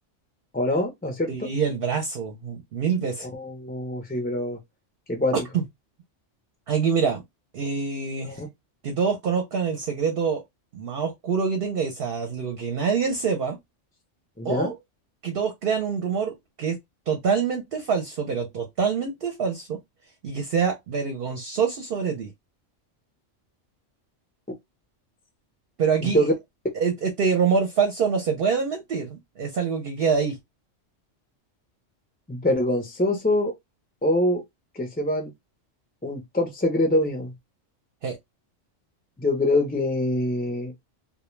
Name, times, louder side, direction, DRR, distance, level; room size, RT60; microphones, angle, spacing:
voice 1, 0.5-1.5 3.2-4.6 5.1-5.3 8.2-8.5 14.4-14.7 26.0-26.3 32.3-33.5 34.0-34.4 34.7-35.3 36.0-37.3 39.2-40.7, left 1 dB, 15° left, 0.3 m, -24 dB
voice 2, 1.3-3.3 5.5-5.6 6.7-7.2 7.5-8.4 8.8-10.4 10.7-13.6 14.4-14.7 15.2-16.8 17.1-19.8 20.2-22.3 25.8-26.3 26.7-30.4 38.0-38.2, right 6 dB, 60° right, 0.7 m, -25 dB
2.2 x 2.2 x 3.0 m
omnidirectional pair, 1.3 m